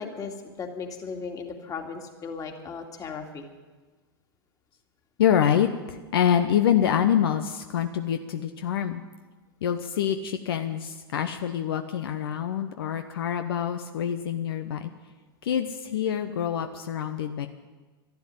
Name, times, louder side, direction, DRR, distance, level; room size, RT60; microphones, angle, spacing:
voice 1, 0.0-3.5, left 5 dB, 25° left, 4 dB, 2.4 m, -36 dB
voice 2, 5.2-9.0 9.6-14.9 15.4-17.5, left 9 dB, 70° left, 7 dB, 0.9 m, -26 dB
12.5 x 11.5 x 10.0 m, 1.3 s
hypercardioid pair, 95°, 13 cm